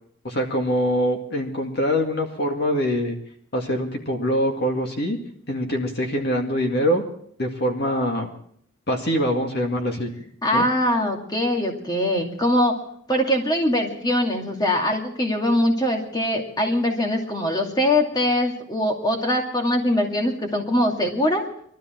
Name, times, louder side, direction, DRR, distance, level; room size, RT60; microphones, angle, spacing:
voice 1, 0.2-3.2 3.5-5.2 5.5-7.0 7.4-8.3 8.9-10.1 10.5-10.7, equal, 50° left, 2 dB, 2.1 m, -24 dB
voice 2, 10.4-12.8 13.1-21.4, left 1 dB, 20° left, 1 dB, 2.5 m, -22 dB
22.0 x 13.5 x 4.5 m, 0.64 s
head